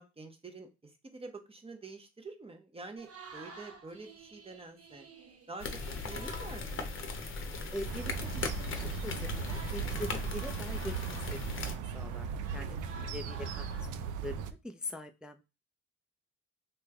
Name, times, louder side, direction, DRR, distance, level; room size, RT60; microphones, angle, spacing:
voice 1, 0.0-5.1 5.5-6.8 12.5-13.1, right 3 dB, 20° right, 5 dB, 0.8 m, -47 dB
sound 1, 3.0-8.5 9.1-12.1 12.4-13.9, right 4 dB, 50° right, 0.9 m, -52 dB
sound 2, 5.6-11.8, left 4 dB, 40° left, 0.7 m, -38 dB
voice 2, 7.7-15.4, left 1 dB, 5° right, 6 dB, 0.3 m, -43 dB
sound 3, 7.8-14.5, right 7 dB, 85° right, 0.5 m, -38 dB
3.2 x 2.1 x 3.5 m, 0.28 s
cardioid pair, 90°, 30 cm